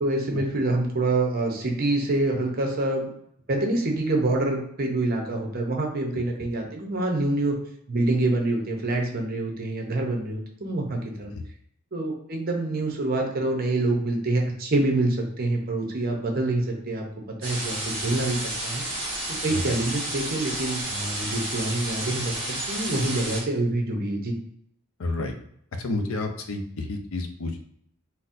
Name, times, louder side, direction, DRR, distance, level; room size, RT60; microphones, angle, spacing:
voice 1, 0.0-3.1 3.5-7.5 7.9-11.3 11.9-18.8 19.4-24.3, right 2 dB, 45° right, 1 dB, 0.7 m, -26 dB
sound 1, 17.4-23.4, right 1 dB, 25° right, 1.4 m, -31 dB
voice 2, 25.0-25.3 25.8-27.6, left 2 dB, 75° left, 5 dB, 0.5 m, -30 dB
4.0 x 2.1 x 2.5 m, 0.70 s
head